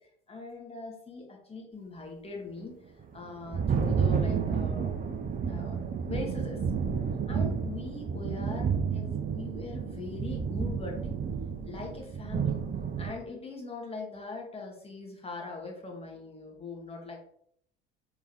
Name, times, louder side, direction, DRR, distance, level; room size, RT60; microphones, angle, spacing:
voice 1, 0.0-2.8 3.1-5.0 5.5-6.6 7.3-11.2 11.6-12.6 13.0-17.2, left 3 dB, 20° left, 0 dB, 2.3 m, -41 dB
Thunder, 3.0-13.1, right 6 dB, 30° right, 0.9 m, -31 dB
5.9 x 3.7 x 4.6 m, 0.67 s
figure-of-eight pair, 65°, 29 cm